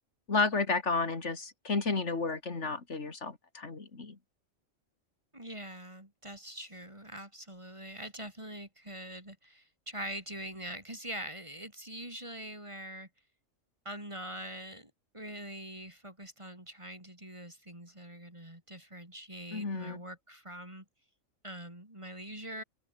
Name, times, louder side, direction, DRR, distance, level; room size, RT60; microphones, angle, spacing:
voice 1, 0.3-4.2 19.5-20.0, left 4 dB, 60° left, 2.9 m, -32 dB
voice 2, 5.3-13.1 13.8-20.8 21.4-22.6, right 1 dB, 20° right, 4.3 m, -44 dB
open air
omnidirectional pair, 1.4 m